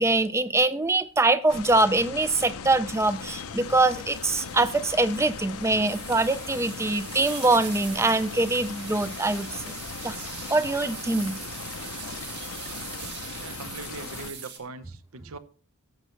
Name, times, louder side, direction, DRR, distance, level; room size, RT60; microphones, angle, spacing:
voice 1, 0.0-9.6 10.0-10.2 10.5-11.4, right 2 dB, 10° right, 0.4 m, -23 dB
sound 1, 1.5-14.3, left 6 dB, 75° left, 0.6 m, -39 dB
sound 2, 2.9-14.6, right 7 dB, 45° right, 1.6 m, -42 dB
voice 2, 13.4-15.4, right 3 dB, 70° right, 0.7 m, -41 dB
16.0 x 6.7 x 3.2 m
head